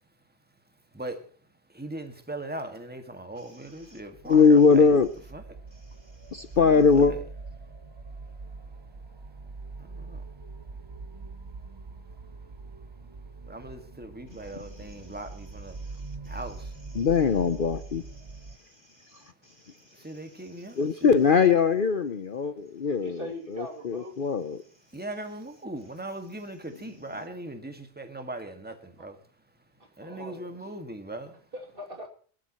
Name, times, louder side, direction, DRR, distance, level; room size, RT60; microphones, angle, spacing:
voice 1, 0.6-4.9 5.3-7.2 8.2-9.4 9.7-10.8 11.2-16.9 17.2-17.4 19.0-19.5 19.8-21.3 24.9-31.5, right 1 dB, 10° right, 6 dB, 1.8 m, -41 dB
sound 1, 3.8-18.6, right 3 dB, 30° right, 0.5 m, -43 dB
voice 2, 4.3-5.1 6.3-7.1 16.9-18.0 19.1-19.2 20.8-23.2 23.5-24.6, left 5 dB, 50° left, 11 dB, 0.9 m, -21 dB
voice 3, 23.0-24.2 29.0-29.1 30.0-30.6 31.5-32.1, equal, 45° right, 1 dB, 2.9 m, -40 dB
22.5 x 12.5 x 3.1 m, 0.44 s
omnidirectional pair, 1.3 m